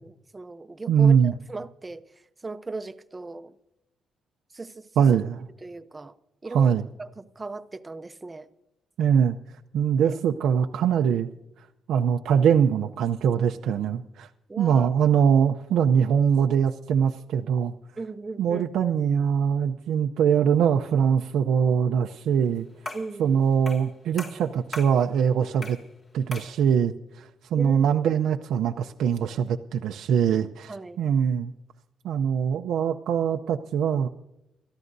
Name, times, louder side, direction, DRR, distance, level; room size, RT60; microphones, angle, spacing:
voice 1, 0.0-2.1 2.4-3.5 4.5-4.9 5.6-6.1 6.4-6.7 7.0-8.5 10.0-10.1 14.5-15.2 18.0-18.7 22.9-23.4 27.6-27.9 30.7-31.0, right 3 dB, 20° right, 12 dB, 0.7 m, -38 dB
voice 2, 0.9-1.3 5.0-5.4 6.5-6.8 9.0-9.4 9.7-11.3 11.9-14.3 14.6-17.7 18.4-22.7 23.2-25.8 26.1-31.5 32.0-34.1, right 7 dB, 80° right, 4 dB, 0.6 m, -22 dB
sound 1, 22.8-23.2 23.7-23.9 24.2-25.0 25.6-25.9 26.3-26.6, left 2 dB, 40° left, 2.3 m, -38 dB
29.0 x 13.5 x 2.6 m, 0.88 s
cardioid pair, 115°, 0 cm